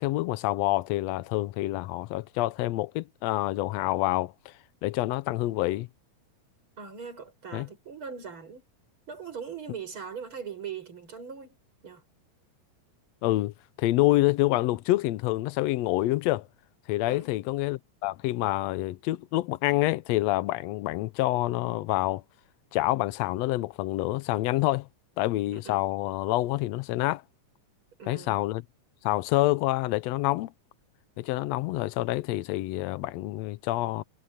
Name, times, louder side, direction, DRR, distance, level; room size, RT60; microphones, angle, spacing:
voice 1, 0.0-4.5 4.8-5.9 7.5-7.7 13.2-16.5 16.9-22.2 22.7-24.9 25.2-27.2 28.1-28.6 29.0-30.5 31.2-34.0, left 17 dB, 75° left, 1.7 m, -27 dB
voice 2, 6.8-8.6 9.1-11.6 11.8-12.0 17.0-17.3 25.5-25.8 28.0-28.4, right 6 dB, 45° right, 6.4 m, -40 dB
omnidirectional pair, 3.4 m